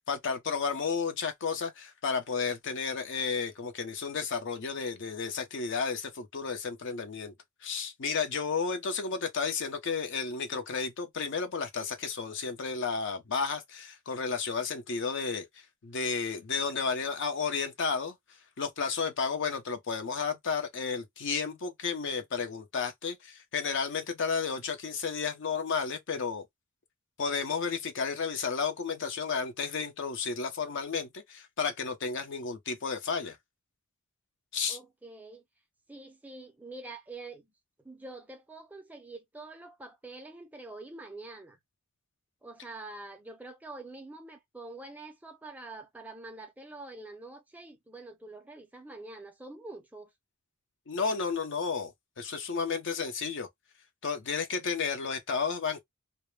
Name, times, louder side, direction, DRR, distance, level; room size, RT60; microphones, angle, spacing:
voice 1, 0.0-7.3 7.6-26.5 27.2-33.4 34.5-34.8 50.9-53.5 54.0-55.8, left 5 dB, 55° left, 0.5 m, -32 dB
voice 2, 34.7-35.4 35.9-37.5 37.8-41.6 42.4-50.1, right 2 dB, 5° right, 0.4 m, -46 dB
2.1 x 2.0 x 3.1 m
head